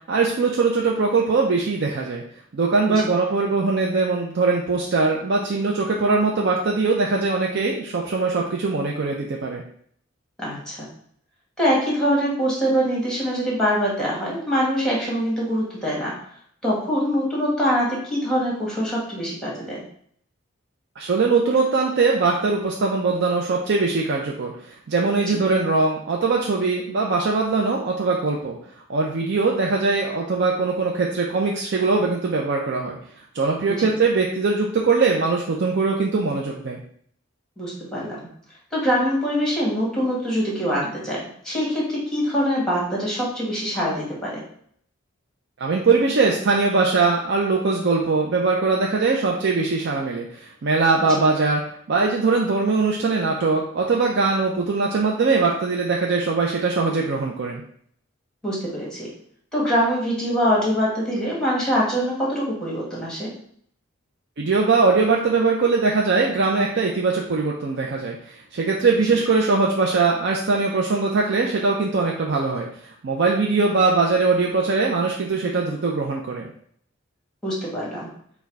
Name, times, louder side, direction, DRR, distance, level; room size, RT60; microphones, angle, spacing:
voice 1, 0.1-2.2 2.5-9.6 21.0-24.5 24.9-28.6 28.9-33.0 33.3-36.8 45.6-51.6 51.9-57.6 64.4-76.5, right 4 dB, 60° right, -1 dB, 0.5 m, -21 dB
voice 2, 10.4-10.9 11.6-16.1 16.6-19.8 25.3-25.4 33.7-33.9 37.6-38.2 38.7-44.4 51.1-51.2 58.4-59.1 59.5-63.3 77.4-78.1, equal, 5° left, -5 dB, 1.5 m, -24 dB
4.6 x 2.3 x 4.6 m, 0.63 s
head